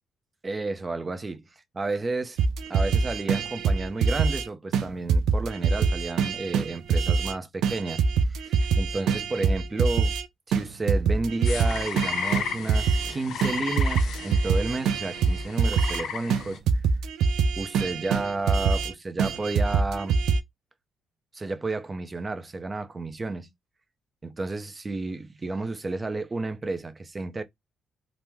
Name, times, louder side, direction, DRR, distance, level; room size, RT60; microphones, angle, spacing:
voice 1, 0.4-1.5 1.7-2.4 2.7-8.0 8.3-10.1 10.5-16.6 17.6-20.2 21.3-23.5 24.2-27.4, right 3 dB, 25° right, 0.5 m, -31 dB
sound 1, 2.4-4.4 4.7-4.8 5.1-7.3 7.6-10.2 10.5-13.1 13.4-16.0 16.3-16.4 16.7-18.9 19.2-20.4, right 5 dB, 80° right, 0.4 m, -24 dB
sound 2, 11.4-16.6, left 7 dB, 75° left, 0.5 m, -34 dB
3.0 x 2.0 x 3.3 m
cardioid pair, 90°, 0 cm